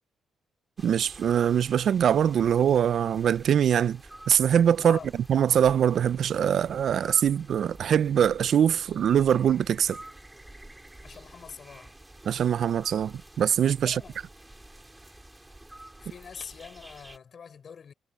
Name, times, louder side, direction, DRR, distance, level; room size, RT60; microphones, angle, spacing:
sound 1, 0.8-17.2, right 1 dB, 10° right, 3.7 m, -49 dB
voice 1, 0.8-4.0 4.3-5.0 5.3-10.0 12.3-14.0, right 9 dB, 60° right, 0.5 m, -23 dB
voice 2, 11.0-12.0 13.8-14.2 16.0-17.9, left 6 dB, 50° left, 5.5 m, -44 dB
cardioid pair, 90°, 0 cm